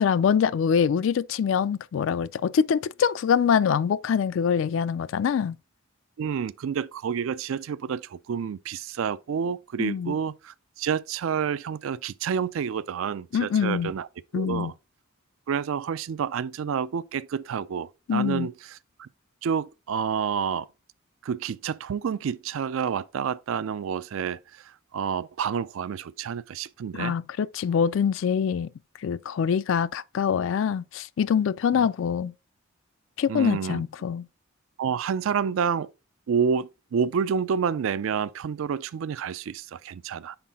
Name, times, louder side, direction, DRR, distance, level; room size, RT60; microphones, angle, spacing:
voice 1, 0.0-5.6 9.8-10.1 13.3-13.9 14.3-14.7 18.1-18.5 26.9-28.7 29.0-32.3 33.2-34.3, left 7 dB, 65° left, 0.3 m, -24 dB
voice 2, 6.2-14.1 14.3-14.7 15.5-18.5 19.0-19.1 19.4-20.7 21.2-27.1 31.8-31.9 33.3-33.8 34.8-35.9 36.3-40.4, right 7 dB, 75° right, 0.4 m, -29 dB
5.9 x 4.6 x 3.5 m
head